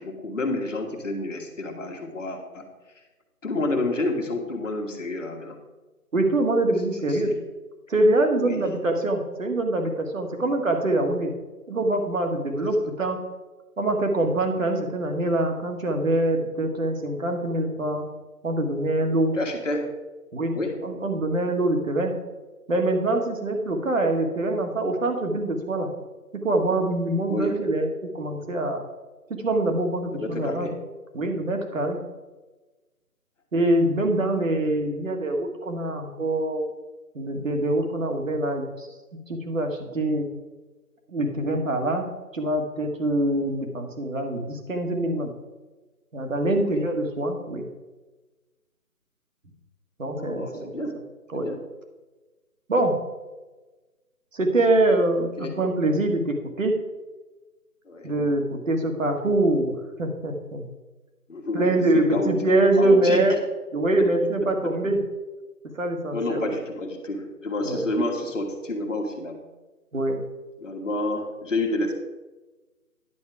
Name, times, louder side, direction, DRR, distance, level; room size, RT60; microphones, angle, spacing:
voice 1, 0.0-2.7 3.4-5.6 7.0-7.3 8.4-8.6 19.3-19.8 20.5-20.8 27.3-27.5 30.1-30.7 46.6-46.8 50.1-50.9 51.4-51.6 55.4-55.5 57.8-58.1 61.3-62.3 62.8-63.2 64.6-64.7 66.1-69.4 70.6-72.0, left 2 dB, 55° left, 2 dB, 1.6 m, -29 dB
voice 2, 6.1-7.3 7.9-11.3 11.7-13.2 13.8-18.0 18.4-19.3 20.3-22.1 22.7-25.9 26.4-28.8 29.4-30.7 31.1-32.0 33.5-36.7 37.1-38.9 39.3-40.3 41.1-42.1 42.3-45.3 46.1-47.6 50.0-50.7 51.3-51.5 52.7-52.9 54.3-56.7 58.0-59.7 60.0-60.7 61.5-63.3 63.7-65.0 65.7-66.6 67.6-67.8 69.9-70.2, right 1 dB, 55° right, 3 dB, 1.8 m, -24 dB
10.5 x 6.4 x 4.8 m, 1.2 s
figure-of-eight pair, 160°, 46 cm